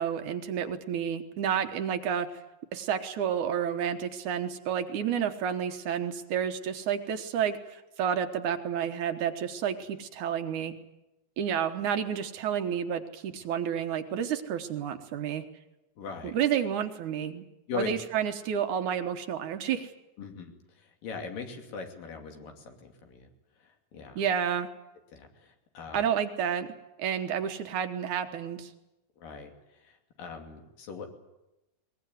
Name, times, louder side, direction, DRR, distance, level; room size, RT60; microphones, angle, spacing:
voice 1, 0.0-2.3 2.7-10.7 11.4-15.4 16.3-17.5 17.8-19.9 24.2-24.7 25.9-26.7 27.0-28.7, right 8 dB, 70° right, 8 dB, 2.5 m, -30 dB
voice 2, 16.0-16.3 17.7-17.9 20.2-23.3 23.6-24.2 25.1-26.1 29.2-31.1, left 6 dB, 80° left, 4 dB, 4.4 m, -41 dB
22.0 x 20.5 x 9.5 m, 0.95 s
omnidirectional pair, 3.9 m